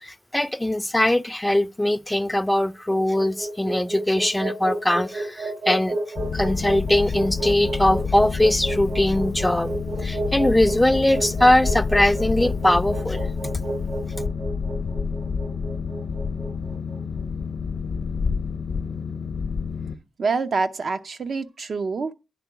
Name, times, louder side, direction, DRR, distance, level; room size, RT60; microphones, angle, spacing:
voice 1, 0.0-6.0 6.3-9.8 10.0-13.2, left 1 dB, 10° left, 0.4 m, -21 dB
sound 1, 2.8-17.0, right 2 dB, 80° right, 2.8 m, -31 dB
Boat Water vehicle, 6.2-20.0, left 5 dB, 65° left, 0.8 m, -28 dB
voice 2, 20.2-22.1, right 4 dB, 65° right, 0.7 m, -26 dB
10.0 x 3.7 x 6.0 m
cardioid pair, 55°, 0 cm